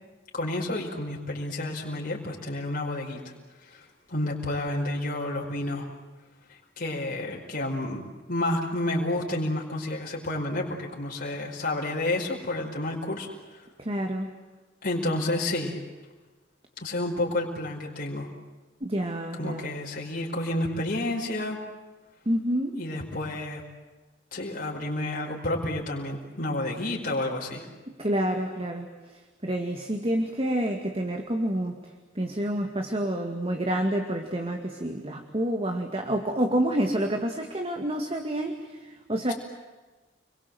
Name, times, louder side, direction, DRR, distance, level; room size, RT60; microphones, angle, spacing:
voice 1, 0.3-3.2 3.6-5.9 6.5-8.0 8.3-13.3 13.5-13.6 14.8-15.8 16.8-18.3 19.4-21.6 22.7-23.6 24.3-27.6, left 1 dB, 50° left, -2 dB, 5.0 m, -30 dB
voice 2, 13.8-14.3 18.8-19.7 22.3-22.8 27.9-39.3, right 1 dB, 30° right, 4 dB, 2.1 m, -28 dB
29.5 x 23.0 x 7.9 m, 1.3 s
head